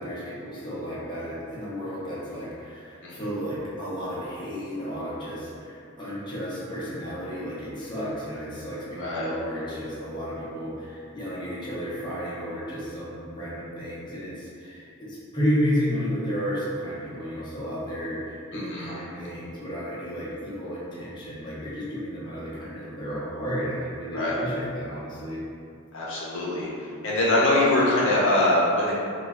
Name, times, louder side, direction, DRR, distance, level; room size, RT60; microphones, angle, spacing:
voice 1, 0.0-25.4, equal, 20° left, -9 dB, 0.7 m, -32 dB
voice 2, 9.0-9.3 18.5-18.9 24.1-24.4 25.9-26.7 27.0-28.9, left 1 dB, 60° left, -6 dB, 0.7 m, -23 dB
3.2 x 2.3 x 3.4 m, 2.5 s
head